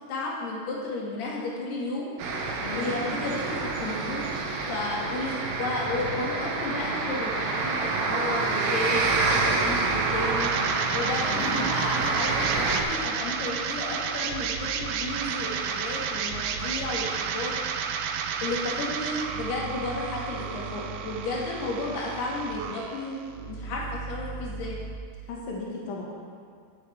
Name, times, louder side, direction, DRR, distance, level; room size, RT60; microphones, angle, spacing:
voice 1, 0.1-17.6 18.4-24.8, left 2 dB, 85° left, -4 dB, 4.0 m, -33 dB
sound 1, 2.2-12.8, right 3 dB, 70° right, 2.8 m, -27 dB
voice 2, 2.6-3.0 11.3-11.8 25.3-26.0, left 3 dB, 65° left, -3 dB, 3.2 m, -35 dB
sound 2, 9.0-25.0, right 6 dB, 85° right, 2.8 m, -32 dB
16.5 x 10.0 x 3.5 m, 2.1 s
omnidirectional pair, 4.6 m